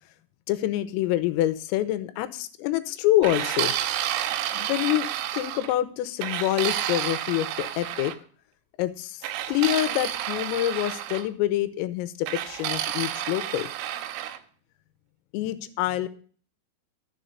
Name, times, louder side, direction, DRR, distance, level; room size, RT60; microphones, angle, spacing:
voice 1, 0.5-3.7 4.5-5.1 5.3-8.1 8.8-13.7 15.3-16.1, left 14 dB, 85° left, 12 dB, 3.5 m, -26 dB
sound 1, 3.2-5.7 6.2-8.2 9.2-11.3 12.3-14.4, right 12 dB, 90° right, 3.7 m, -30 dB
12.5 x 7.2 x 6.5 m, 0.43 s
omnidirectional pair, 6.0 m